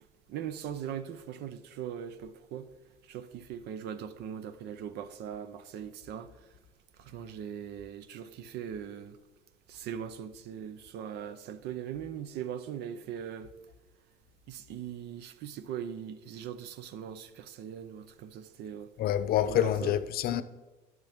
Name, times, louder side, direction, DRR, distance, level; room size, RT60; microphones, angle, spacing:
voice 1, 0.3-2.7 3.1-6.5 7.0-9.2 9.7-13.5 14.5-18.9 19.5-20.0, right 9 dB, 80° right, 0.6 m, -40 dB
voice 2, 19.0-20.4, left 11 dB, 65° left, 0.6 m, -27 dB
12.0 x 6.2 x 3.5 m
cardioid pair, 110°, 17 cm